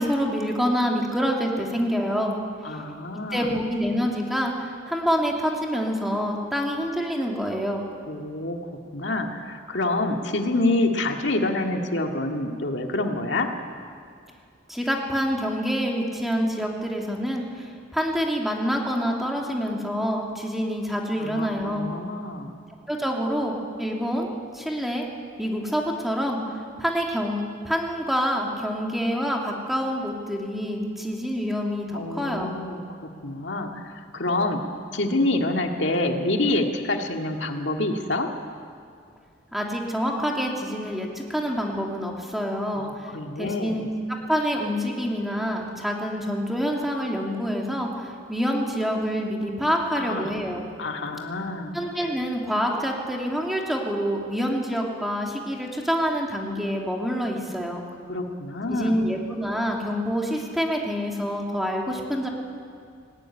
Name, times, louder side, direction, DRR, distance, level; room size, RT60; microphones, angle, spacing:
voice 1, 0.0-2.4 3.3-7.8 14.7-21.9 22.9-24.3 24.5-25.1 25.4-26.4 26.8-32.5 39.5-43.1 43.4-43.9 44.3-50.7 51.7-57.9 58.7-62.3, equal, ahead, -1 dB, 2.7 m, -27 dB
voice 2, 2.6-3.6 8.1-8.6 8.9-13.5 21.2-22.6 31.9-33.0 33.2-34.6 34.9-38.3 42.7-43.9 49.9-50.3 50.8-51.8 58.1-59.0, left 2 dB, 65° left, 3 dB, 2.0 m, -27 dB
18.5 x 18.5 x 10.0 m, 2.2 s
head